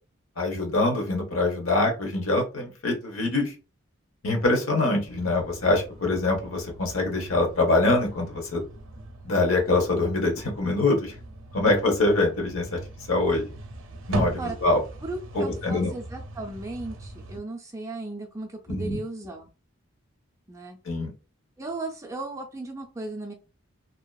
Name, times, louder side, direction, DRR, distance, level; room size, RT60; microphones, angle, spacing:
voice 1, 0.4-3.5 4.2-8.6 9.2-11.1 11.5-12.8 13.1-13.5 14.1-14.8 15.3-15.9 18.7-19.0 20.8-21.1, left 2 dB, 85° left, 1 dB, 0.9 m, -24 dB
sound 1, 5.0-17.4, right 1 dB, 70° right, 0.5 m, -39 dB
voice 2, 15.0-19.5 20.5-20.8 21.6-23.3, right 2 dB, 15° right, 2 dB, 0.4 m, -36 dB
2.7 x 2.3 x 2.3 m, 0.32 s
head